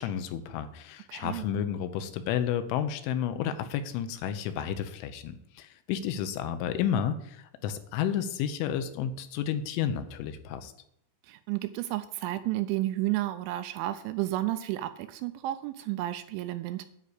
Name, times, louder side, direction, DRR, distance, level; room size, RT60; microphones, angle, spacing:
voice 1, 0.0-10.7, left 9 dB, 80° left, 9 dB, 3.1 m, -31 dB
voice 2, 1.1-1.5 11.2-16.9, right 15 dB, 85° right, 10 dB, 2.8 m, -32 dB
10.0 x 4.8 x 8.1 m, 0.76 s
omnidirectional pair, 5.6 m